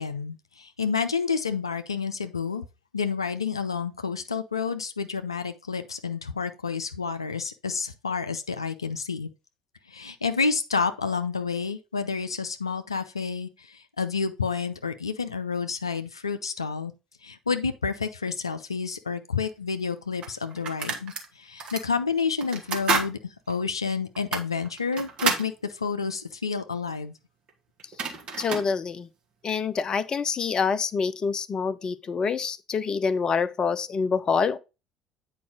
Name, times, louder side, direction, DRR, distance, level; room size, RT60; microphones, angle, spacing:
voice 1, 0.0-2.6 2.9-9.3 9.9-16.9 17.2-27.1, left 5 dB, 80° left, 0.5 m, -29 dB
sound 1, 19.5-19.6 20.2-21.3 21.6-21.9 22.4-23.1 23.5-23.6 24.2-25.5 27.5-27.6 27.8-28.7, right 4 dB, 45° right, 1.6 m, -29 dB
voice 2, 28.4-29.1 29.4-34.6, left 5 dB, 30° left, 0.6 m, -26 dB
8.5 x 4.8 x 3.7 m
figure-of-eight pair, 60°, 3 cm